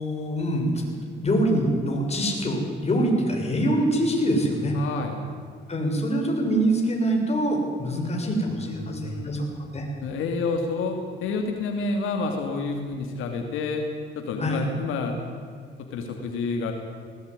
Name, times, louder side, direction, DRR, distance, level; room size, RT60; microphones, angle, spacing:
voice 1, 0.0-4.8 5.7-9.5 9.7-9.9 14.4-14.7, right 1 dB, 30° left, 1 dB, 6.7 m, -24 dB
voice 2, 4.7-5.2 7.9-9.4 10.0-11.0 11.2-13.8 14.2-15.3 15.8-16.7, left 4 dB, 90° left, 4 dB, 2.7 m, -29 dB
19.5 x 18.5 x 9.8 m, 2.1 s
cardioid pair, 90°, 20 cm